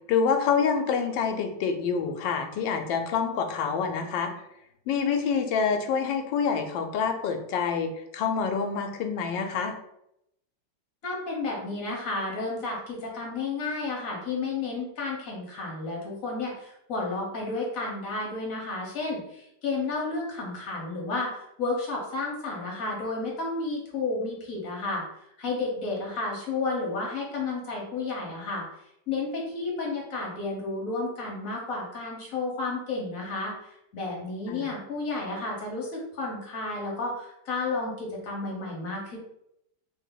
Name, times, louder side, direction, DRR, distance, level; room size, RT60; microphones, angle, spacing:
voice 1, 0.1-4.3 4.9-9.8 34.5-34.7, left 6 dB, 85° left, 5 dB, 1.3 m, -27 dB
voice 2, 11.0-25.0 25.4-28.6 29.1-39.2, left 3 dB, 50° left, -2 dB, 1.4 m, -32 dB
3.6 x 2.7 x 3.9 m, 0.79 s
omnidirectional pair, 2.0 m